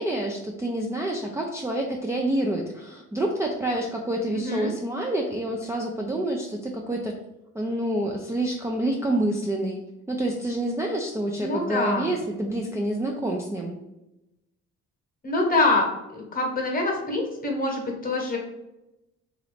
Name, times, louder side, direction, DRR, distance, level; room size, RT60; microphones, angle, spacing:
voice 1, 0.0-7.1 7.5-9.8 10.1-13.8, right 1 dB, 10° right, -1 dB, 0.4 m, -27 dB
voice 2, 4.3-4.7 11.4-12.1 15.2-18.4, left 2 dB, 30° left, 0 dB, 1.0 m, -25 dB
3.0 x 2.4 x 3.2 m, 0.93 s
cardioid pair, 90°, 30 cm